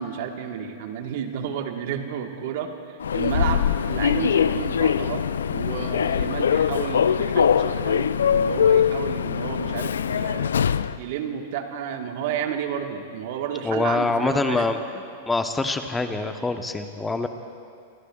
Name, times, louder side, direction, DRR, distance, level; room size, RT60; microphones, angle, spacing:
voice 1, 0.0-10.5 11.0-14.6, right 8 dB, 60° right, 5 dB, 1.4 m, -31 dB
Human voice / Subway metro underground, 3.0-11.0, left 7 dB, 80° left, 0.4 m, -22 dB
voice 2, 13.6-14.8 15.2-17.3, left 3 dB, 10° left, 7 dB, 0.9 m, -24 dB
26.0 x 21.0 x 2.4 m, 2.3 s
hypercardioid pair, 105°, 0 cm